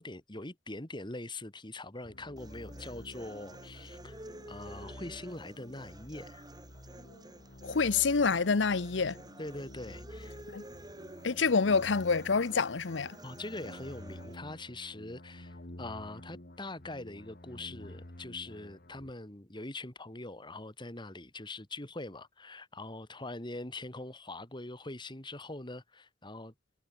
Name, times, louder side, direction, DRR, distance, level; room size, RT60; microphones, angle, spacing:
voice 1, 0.0-4.2 4.5-6.5 9.4-10.4 13.2-26.5, left 2 dB, 25° left, 2.8 m, -43 dB
sound 1, 2.0-19.1, left 1 dB, 55° left, 2.3 m, -50 dB
sound 2, 2.4-14.4, right 1 dB, 20° right, 6.5 m, -51 dB
voice 2, 7.6-9.2 10.5-10.6 11.2-13.1, left 5 dB, 85° left, 0.8 m, -27 dB
head